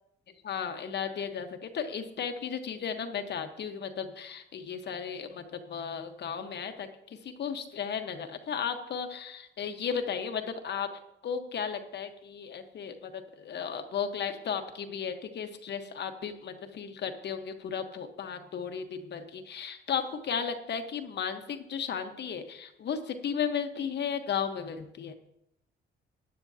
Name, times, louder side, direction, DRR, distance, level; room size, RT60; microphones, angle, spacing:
voice 1, 0.4-6.9 7.2-10.9 11.2-25.1, left 7 dB, 60° left, 7 dB, 1.2 m, -35 dB
15.5 x 9.8 x 2.8 m, 0.79 s
cardioid pair, 90°, 20 cm